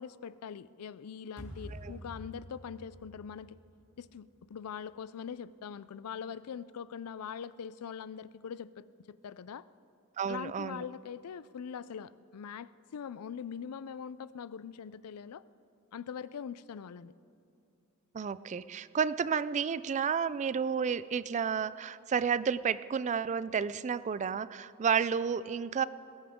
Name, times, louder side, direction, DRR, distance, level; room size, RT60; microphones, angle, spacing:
voice 1, 0.0-3.6 4.0-9.7 10.3-15.4 15.9-17.1, left 7 dB, 85° left, 17 dB, 0.4 m, -42 dB
sound 1, 1.4-4.5, equal, 10° left, 2.7 m, -48 dB
voice 2, 10.2-10.8 18.1-25.8, right 6 dB, 35° right, 17 dB, 0.3 m, -31 dB
20.0 x 17.0 x 3.6 m, 2.6 s
head